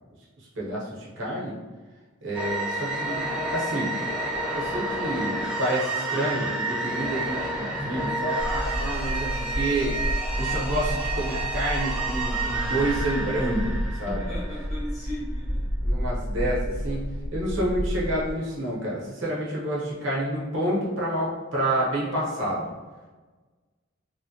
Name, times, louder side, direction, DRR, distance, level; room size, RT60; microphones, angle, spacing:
voice 1, 0.4-1.6 2.2-3.3 3.5-4.0 4.5-14.3 15.8-17.1 17.3-22.7, right 1 dB, 70° right, -5 dB, 0.9 m, -29 dB
sound 1, 2.3-14.9, right 2 dB, 5° right, 0.4 m, -30 dB
sound 2, 8.4-18.3, equal, 65° left, 0.9 m, -30 dB
voice 2, 14.0-15.7, left 1 dB, 35° left, -6 dB, 1.0 m, -37 dB
3.1 x 2.1 x 2.7 m, 1.3 s
head